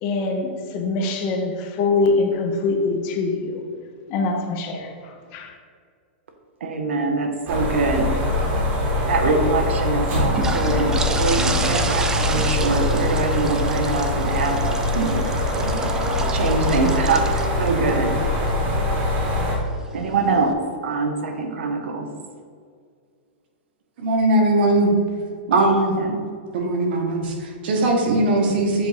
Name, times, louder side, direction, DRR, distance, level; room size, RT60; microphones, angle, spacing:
voice 1, 0.0-3.6 4.1-5.5, left 3 dB, 35° left, 3 dB, 0.7 m, -24 dB
voice 2, 6.6-8.1 9.1-15.2 16.3-18.2 19.9-22.1 25.5-26.2, right 3 dB, 85° right, 5 dB, 0.8 m, -24 dB
sound 1, 7.5-19.6, left 1 dB, 30° right, 1.1 m, -23 dB
sound 2, 8.1-20.5, right 3 dB, 10° right, 0.3 m, -32 dB
voice 3, 24.0-24.9 25.5-25.9 26.5-28.9, right 2 dB, 55° right, 2 dB, 1.2 m, -20 dB
7.5 x 2.6 x 4.8 m, 2.1 s
supercardioid pair, 160°, 6 cm